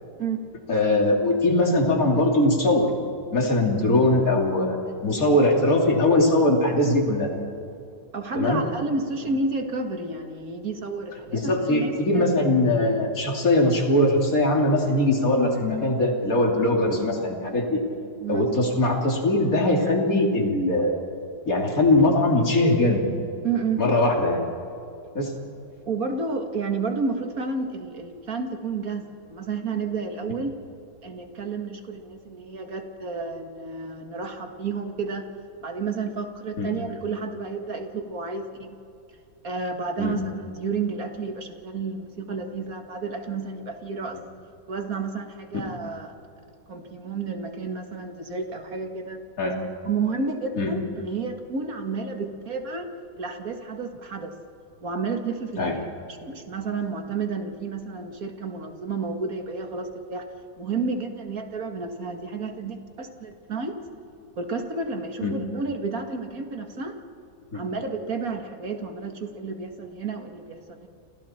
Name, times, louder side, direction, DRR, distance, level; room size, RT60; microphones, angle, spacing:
voice 1, 0.7-2.9 3.3-4.8 5.0-7.3 8.3-8.6 11.3-17.8 18.3-20.9 21.4-23.0 23.8-24.4 25.1-25.3 36.6-36.7 40.0-40.2 45.5-45.6 49.4-49.6 50.6-50.7 55.6-55.7 65.2-65.4 67.5-67.6, left 1 dB, 50° left, 1 dB, 3.4 m, -21 dB
voice 2, 8.1-12.5 18.2-18.5 23.4-23.8 25.9-30.5 31.0-35.3 35.6-38.8 39.4-44.2 44.7-46.2 46.7-49.2 49.8-52.9 53.2-54.3 54.8-55.8 56.1-60.3 60.6-63.8 64.4-67.0 67.5-70.9, right 4 dB, 55° right, 5 dB, 2.3 m, -31 dB
30.0 x 26.5 x 4.4 m, 2.6 s
omnidirectional pair, 1.9 m